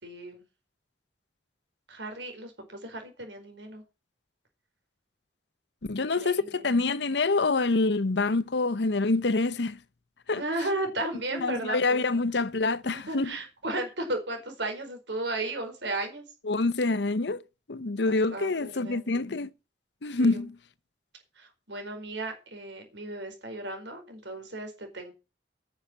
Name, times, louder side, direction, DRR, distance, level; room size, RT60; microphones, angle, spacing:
voice 1, 0.0-0.4 1.9-3.8 6.0-6.7 10.4-12.0 12.8-16.2 18.0-19.1 20.2-20.5 21.4-25.1, right 2 dB, 85° right, 4.8 m, -35 dB
voice 2, 5.9-9.8 10.3-10.4 11.3-13.3 16.4-17.4 17.7-19.5 20.0-20.6, left 3 dB, 75° left, 0.8 m, -26 dB
9.9 x 7.3 x 8.5 m
head